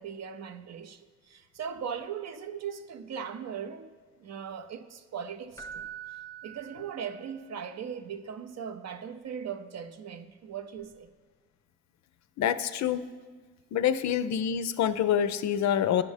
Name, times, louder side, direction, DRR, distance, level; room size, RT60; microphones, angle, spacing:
voice 1, 0.0-3.9 4.2-5.9 6.4-11.1, right 7 dB, 50° right, 0.5 m, -39 dB
Keyboard (musical), 5.6-7.5 10.8-10.9, right 8 dB, 10° left, 0.5 m, -44 dB
voice 2, 12.4-13.0 13.7-16.0, left 9 dB, 60° left, 0.4 m, -26 dB
10.5 x 5.2 x 3.3 m
hypercardioid pair, 50°, 33 cm